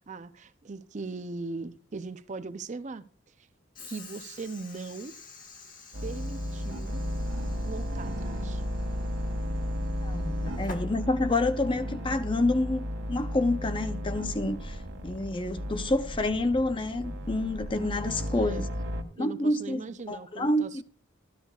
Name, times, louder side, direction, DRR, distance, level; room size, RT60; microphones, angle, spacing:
voice 1, 0.0-3.1 3.8-5.2 6.0-7.0 7.6-8.6 18.3-18.6 19.2-20.8, right 3 dB, 40° right, 0.5 m, -39 dB
Train / Sliding door, 3.7-11.7, left 3 dB, 45° left, 1.6 m, -49 dB
sound 1, 5.9-19.0, equal, 65° right, 1.7 m, -34 dB
voice 2, 10.0-14.8 15.0-18.7 19.2-19.8 20.1-20.8, left 2 dB, 25° left, 0.6 m, -28 dB
13.0 x 12.5 x 2.4 m
head